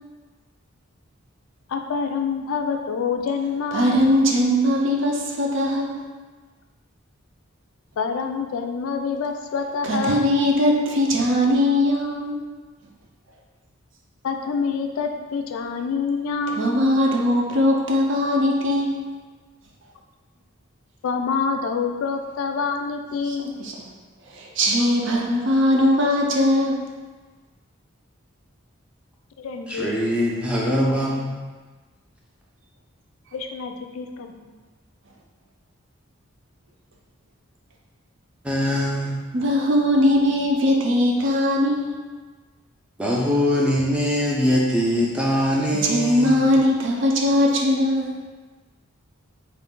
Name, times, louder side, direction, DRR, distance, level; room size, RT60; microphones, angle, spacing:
voice 1, 1.7-4.0 8.0-10.3 14.2-16.8 21.0-23.5 29.4-29.9 33.3-34.5, left 5 dB, 75° left, 5 dB, 0.3 m, -27 dB
voice 2, 3.7-6.0 9.8-12.5 16.6-19.1 23.3-23.7 24.3-26.8 39.3-42.0 45.8-48.2, left 1 dB, 60° right, 0 dB, 0.5 m, -20 dB
voice 3, 29.7-31.3 38.4-39.2 43.0-46.4, equal, 5° right, -4 dB, 0.4 m, -22 dB
3.9 x 2.5 x 3.6 m, 1.3 s
head